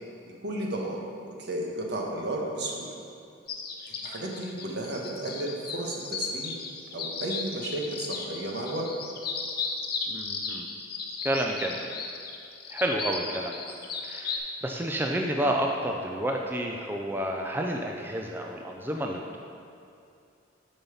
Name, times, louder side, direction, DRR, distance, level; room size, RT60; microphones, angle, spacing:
voice 1, 0.4-1.0 1.4-2.9 3.9-6.5 6.9-8.9, right 1 dB, 65° right, -1 dB, 1.4 m, -33 dB
sound 1, 3.5-14.4, left 5 dB, 55° left, 0.9 m, -35 dB
voice 2, 10.1-10.7 11.2-11.9 12.7-13.6 14.0-19.4, right 1 dB, 10° right, 1 dB, 0.5 m, -30 dB
7.3 x 5.6 x 7.1 m, 2.5 s
head